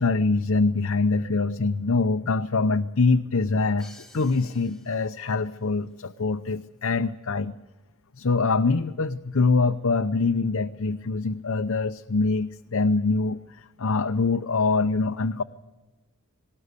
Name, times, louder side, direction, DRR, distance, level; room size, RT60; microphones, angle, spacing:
voice 1, 0.0-3.9 4.1-7.6 8.2-13.4 13.8-15.4, left 3 dB, 65° left, 7 dB, 0.7 m, -24 dB
Crash cymbal, 3.8-5.6, left 2 dB, ahead, 2.4 m, -53 dB
19.5 x 18.5 x 8.2 m, 1.1 s
head